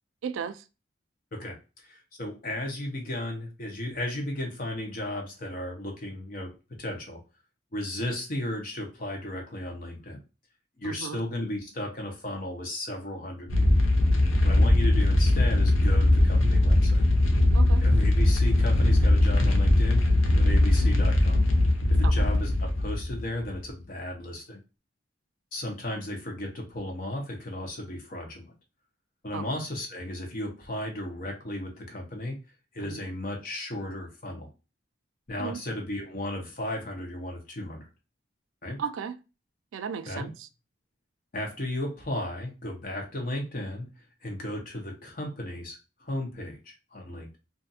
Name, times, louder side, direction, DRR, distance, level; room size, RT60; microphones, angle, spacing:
voice 1, 0.2-0.6 10.8-11.2 17.5-17.8 22.0-22.1 29.3-29.4 32.9-33.0 35.4-35.6 38.8-39.2 39.7-40.3, right 6 dB, 85° right, 0.3 m, -34 dB
voice 2, 1.3-6.5 6.8-7.2 7.7-10.2 10.8-13.7 14.4-17.0 17.8-20.0 20.4-21.4 21.9-24.6 25.5-28.5 29.2-32.4 32.7-34.5 35.3-37.9 38.6-38.8 40.1-40.3 41.3-43.9 44.2-47.4, left 1 dB, 45° left, 0.8 m, -35 dB
sound 1, 13.5-23.6, left 1 dB, 90° left, 0.7 m, -21 dB
2.6 x 2.4 x 2.6 m
head